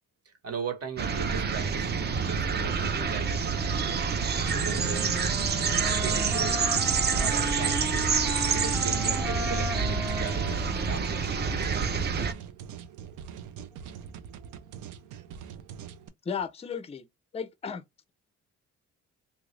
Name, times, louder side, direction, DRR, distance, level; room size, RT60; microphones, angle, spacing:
voice 1, 0.2-1.9 2.2-3.5 4.5-5.2 6.0-6.7 7.1-7.8 8.5-12.3, right 5 dB, 55° right, 1.3 m, -38 dB
sound 1, 1.0-12.3, right 5 dB, 35° right, 0.5 m, -27 dB
Wind instrument woodwind instrument, 4.2-12.3, left 1 dB, 5° right, 1.0 m, -37 dB
sound 2, 10.1-16.1, right 8 dB, 90° right, 0.6 m, -43 dB
voice 2, 16.3-17.0 17.3-17.8, left 6 dB, 20° left, 0.4 m, -34 dB
3.1 x 2.5 x 3.1 m
cardioid pair, 90°, 30 cm